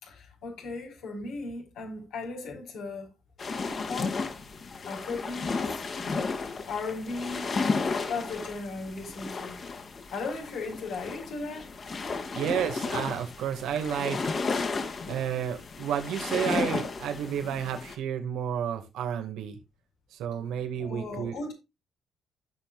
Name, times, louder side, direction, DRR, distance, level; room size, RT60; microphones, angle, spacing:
voice 1, 0.0-3.1 3.7-4.2 4.8-5.5 6.7-7.5 8.1-9.6 10.1-11.7 20.8-21.5, left 3 dB, 80° left, 4.8 m, -36 dB
sound 1, 3.4-18.0, left 4 dB, 45° left, 2.6 m, -33 dB
voice 2, 12.3-14.2 15.1-19.6 20.1-21.4, right 9 dB, 85° right, 2.0 m, -31 dB
15.5 x 5.8 x 2.4 m
cardioid pair, 90°, 0 cm